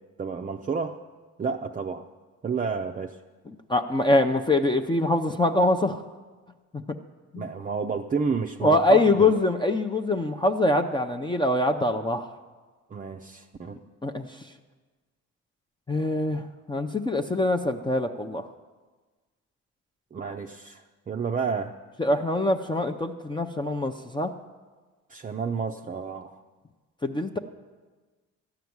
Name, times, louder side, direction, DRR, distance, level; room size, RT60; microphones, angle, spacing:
voice 1, 0.2-1.0 1.4-2.1 2.4-3.2 7.3-9.3 12.9-13.8 20.1-21.7 25.1-26.4, right 5 dB, 25° right, 3 dB, 0.5 m, -30 dB
voice 2, 3.7-6.0 6.7-6.8 7.3-7.4 8.6-12.3 14.0-14.3 15.9-18.5 22.0-24.3 27.0-27.4, left 2 dB, 15° left, 5 dB, 0.6 m, -24 dB
13.0 x 5.9 x 9.4 m, 1.3 s
cardioid pair, 90°, 30 cm